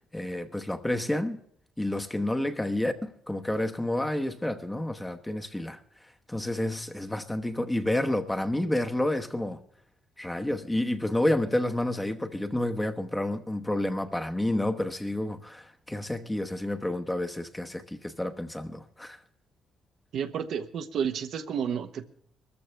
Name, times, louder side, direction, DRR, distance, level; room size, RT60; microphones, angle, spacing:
voice 1, 0.1-1.4 1.8-5.8 6.3-9.6 10.2-19.2, left 1 dB, 10° left, 1.0 m, -29 dB
voice 2, 20.1-22.1, right 7 dB, 70° right, 0.9 m, -31 dB
22.5 x 14.0 x 3.3 m
cardioid pair, 90°, 0 cm